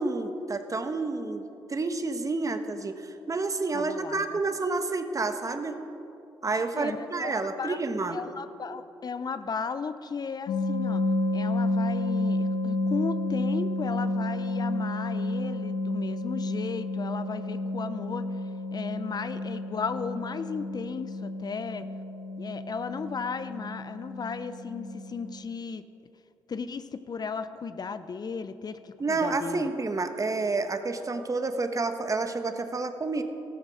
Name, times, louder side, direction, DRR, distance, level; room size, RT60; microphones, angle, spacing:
voice 1, 0.0-1.4 1.7-5.8 6.4-8.2 29.0-33.2, right 3 dB, 35° right, 8 dB, 1.2 m, -29 dB
voice 2, 3.7-4.4 6.7-7.8 8.1-11.0 11.3-18.3 18.7-21.9 22.4-25.8 26.5-29.7, left 5 dB, 45° left, 12 dB, 0.6 m, -35 dB
sound 1, 10.5-25.3, left 2 dB, 75° left, 1.2 m, -31 dB
14.0 x 12.5 x 5.0 m, 2.9 s
supercardioid pair, 50°, 9 cm